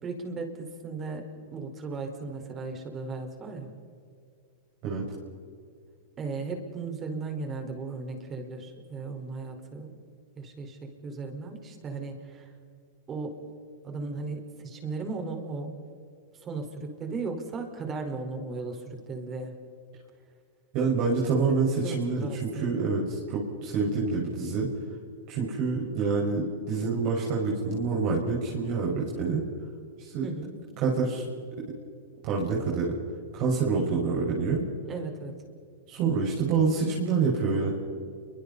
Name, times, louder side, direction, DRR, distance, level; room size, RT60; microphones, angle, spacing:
voice 1, 0.0-3.7 6.2-9.9 10.4-12.5 13.1-13.4 13.8-15.7 16.4-19.6 21.3-22.6 30.2-30.6 34.9-35.3, right 3 dB, 25° right, 3 dB, 4.8 m, -36 dB
voice 2, 20.7-24.7 25.3-29.4 30.0-30.2 30.8-31.2 32.2-33.0 33.3-34.6 35.9-37.7, right 4 dB, 45° right, -3 dB, 5.8 m, -27 dB
29.5 x 24.0 x 4.3 m, 2.3 s
hypercardioid pair, 125°, 0 cm